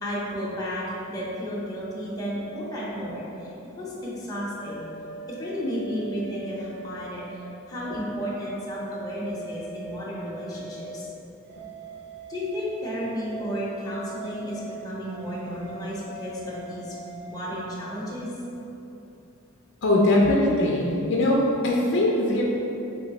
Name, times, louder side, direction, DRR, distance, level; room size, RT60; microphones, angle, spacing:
voice 1, 0.0-3.5 3.8-4.8 5.4-11.0 12.3-16.9 17.3-18.3, equal, 20° left, -7 dB, 0.7 m, -33 dB
sound 1, 4.6-7.4 7.8-11.1 11.5-17.5, right 2 dB, 55° right, 0.5 m, -41 dB
voice 2, 19.8-22.4, left 1 dB, 60° left, -3 dB, 0.5 m, -21 dB
3.8 x 2.9 x 4.0 m, 3.0 s
head